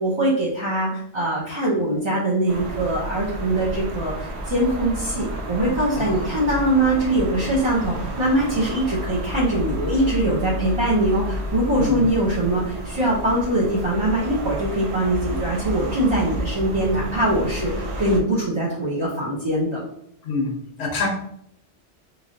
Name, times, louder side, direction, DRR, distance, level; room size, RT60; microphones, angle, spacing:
voice 1, 0.0-19.8, right 1 dB, 35° right, -7 dB, 0.5 m, -22 dB
sound 1, 2.5-18.2, equal, 75° right, 0.8 m, -31 dB
voice 2, 5.9-6.3 11.8-12.0 20.2-21.1, left 4 dB, 70° left, -1 dB, 0.9 m, -26 dB
3.1 x 2.6 x 2.5 m, 0.72 s
omnidirectional pair, 1.2 m